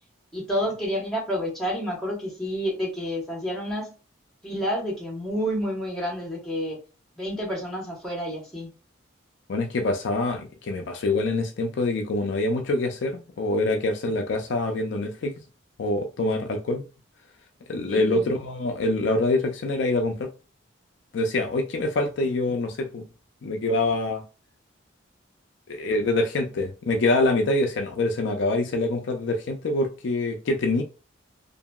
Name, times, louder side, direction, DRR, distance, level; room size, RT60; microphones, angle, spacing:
voice 1, 0.3-3.9 4.4-6.8 7.2-8.7 17.9-18.2, equal, ahead, 1.1 m, -29 dB
voice 2, 9.5-15.3 15.8-16.8 17.7-20.3 21.1-23.0 23.4-24.2 25.7-30.8, left 2 dB, 65° left, 0.4 m, -25 dB
2.8 x 2.6 x 2.3 m
head